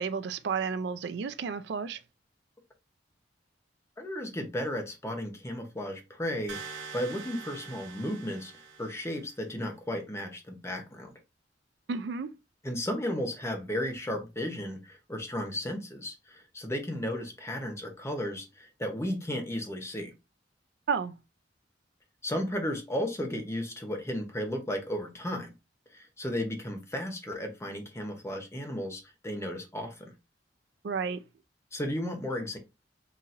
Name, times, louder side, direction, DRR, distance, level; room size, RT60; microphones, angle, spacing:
voice 1, 0.0-2.0 11.9-12.3 20.9-21.1 30.8-31.2, right 5 dB, 65° right, 0.4 m, -31 dB
voice 2, 4.0-8.5 8.8-11.1 12.6-20.1 22.2-25.5 25.9-30.1 31.7-32.6, left 1 dB, 15° left, 0.7 m, -34 dB
sound 1, 6.5-9.4, right 6 dB, 80° right, 0.8 m, -44 dB
4.0 x 2.9 x 2.5 m
head